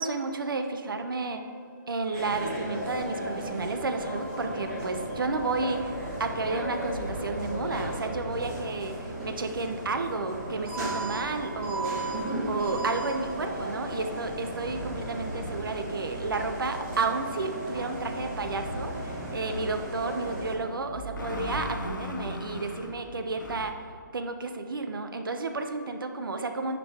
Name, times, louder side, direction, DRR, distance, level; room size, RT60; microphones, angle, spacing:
voice 1, 0.0-1.4 1.9-23.9 24.1-26.8, right 3 dB, 90° right, 7 dB, 0.8 m, -32 dB
sound 1, 0.6-14.2, left 2 dB, 30° left, 0.7 m, -48 dB
sound 2, 2.1-20.5, right 1 dB, 15° right, 1.3 m, -36 dB
sound 3, 4.6-23.7, left 1 dB, 65° left, 1.0 m, -41 dB
9.8 x 5.2 x 3.5 m, 2.4 s
hypercardioid pair, 175°, 11 cm